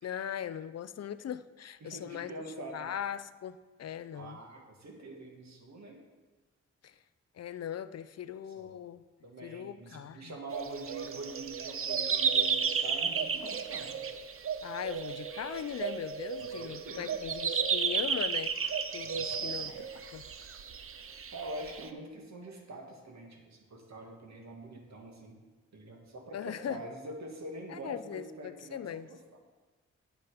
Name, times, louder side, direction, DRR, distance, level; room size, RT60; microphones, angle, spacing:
voice 1, 0.0-2.3 2.7-4.4 6.8-7.0 7.3-9.0 9.4-10.4 14.6-18.6 18.9-19.7 20.1-20.2 26.3-26.8 27.7-29.1, left 9 dB, 60° left, 14 dB, 0.5 m, -39 dB
voice 2, 1.8-2.9 4.1-6.0 8.6-8.7 9.2-14.0 16.4-17.2 19.0-19.8 21.0-25.4 25.7-28.8, right 2 dB, 65° right, 1 dB, 2.2 m, -45 dB
sound 1, 10.5-21.9, right 6 dB, 50° right, 0.7 m, -33 dB
10.0 x 8.1 x 5.1 m, 1.3 s
wide cardioid pair, 105°, 29 cm